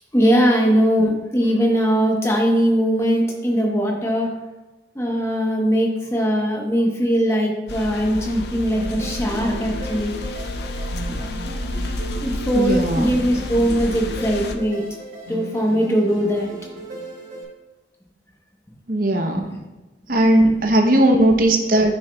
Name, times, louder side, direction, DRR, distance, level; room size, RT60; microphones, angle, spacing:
voice 1, 0.1-4.3 4.9-10.1 11.1-11.2 12.2-14.8 15.3-16.5, equal, 15° left, -1 dB, 1.0 m, -20 dB
sound 1, 7.7-14.5, left 1 dB, 60° left, 0.5 m, -30 dB
sound 2, 8.7-17.4, right 1 dB, 80° right, 2.3 m, -36 dB
voice 2, 12.5-13.1 18.9-19.4 20.1-22.0, right 1 dB, 50° right, 3 dB, 0.8 m, -17 dB
9.2 x 6.2 x 2.3 m, 1.1 s
head